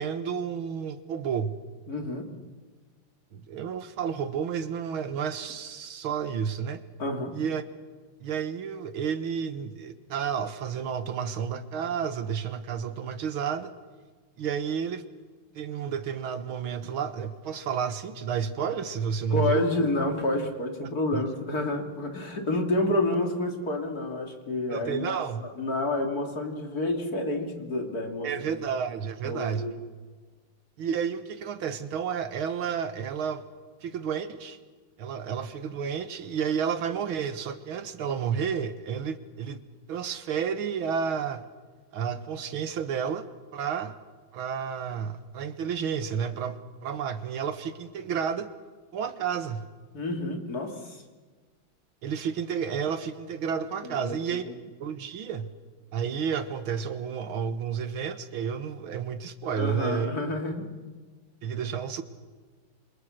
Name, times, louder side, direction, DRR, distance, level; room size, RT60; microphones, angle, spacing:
voice 1, 0.0-1.6 3.3-6.8 7.3-7.6 8.2-13.7 14.4-15.0 15.5-19.7 21.1-21.2 24.7-25.4 28.2-29.7 30.8-33.4 33.8-34.6 35.0-39.6 39.9-41.4 41.9-43.3 43.5-43.9 44.3-48.5 48.9-49.7 52.0-54.4 54.8-55.5 55.9-60.1 61.4-62.0, right 7 dB, 90° right, 11 dB, 2.2 m, -31 dB
voice 2, 1.9-2.3 7.0-7.3 19.3-28.5 29.2-29.7 49.9-51.0 53.8-54.6 59.6-60.7, left 2 dB, 45° left, 3 dB, 3.3 m, -29 dB
28.0 x 26.0 x 6.6 m, 1.4 s
omnidirectional pair, 2.2 m